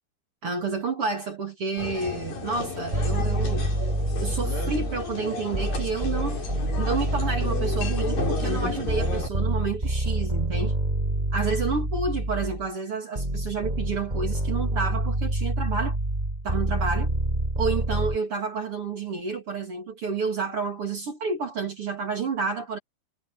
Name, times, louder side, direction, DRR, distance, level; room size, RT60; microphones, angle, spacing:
voice 1, 0.4-3.7 4.2-6.5 6.8-10.7 11.3-16.0 16.4-17.1 17.6-22.8, right 4 dB, 40° right, 2.4 m, -30 dB
sound 1, 1.8-9.3, left 4 dB, 50° left, 7.4 m, -33 dB
sound 2, 2.9-5.1 5.5-12.7 13.2-18.2, right 1 dB, 10° right, 3.0 m, -27 dB
omnidirectional pair, 5.1 m